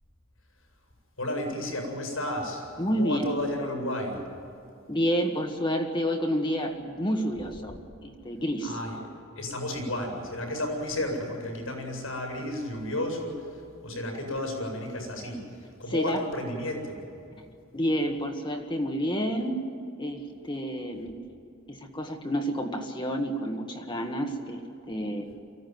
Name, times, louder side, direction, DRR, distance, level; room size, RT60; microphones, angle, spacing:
voice 1, 1.2-4.2 8.6-9.1 9.3-17.0, left 1 dB, 80° left, 2 dB, 7.8 m, -32 dB
voice 2, 2.8-3.3 4.9-7.7 8.0-8.7 15.9-16.2 17.7-19.6 20.0-21.2 21.7-24.6 24.9-25.3, equal, 25° left, 3 dB, 1.6 m, -29 dB
24.0 x 16.0 x 9.5 m, 2.6 s
head